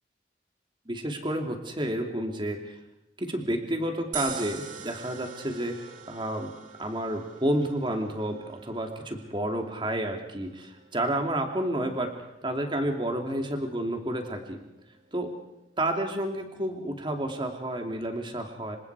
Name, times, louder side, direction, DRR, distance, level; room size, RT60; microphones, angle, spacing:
voice 1, 0.9-2.8 3.2-5.8 6.1-6.5 6.8-12.1 12.4-14.6 15.1-15.3 15.8-18.8, right 1 dB, 25° right, 4 dB, 2.7 m, -30 dB
sound 1, 4.1-16.5, right 6 dB, 45° right, 2.1 m, -46 dB
27.5 x 25.0 x 4.8 m, 0.88 s
head